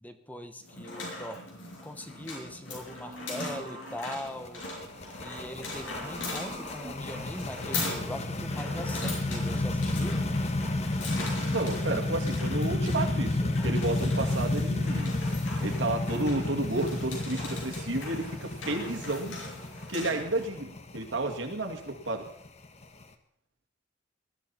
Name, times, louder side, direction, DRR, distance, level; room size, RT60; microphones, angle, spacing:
voice 1, 0.0-1.4 1.8-4.6 5.2-10.2, left 1 dB, 10° left, 8 dB, 0.9 m, -41 dB
sound 1, 0.6-20.5, left 2 dB, 90° left, 6.1 m, -40 dB
sound 2, 1.0-1.8 2.9-4.4 5.7-8.2, right 1 dB, 30° right, 2.2 m, -47 dB
sound 3, 4.3-23.0, left 2 dB, 35° left, 1.3 m, -31 dB
voice 2, 11.5-15.2 15.6-19.3 19.9-22.3, right 2 dB, 70° right, 3 dB, 2.4 m, -31 dB
20.0 x 13.5 x 4.3 m, 0.65 s
head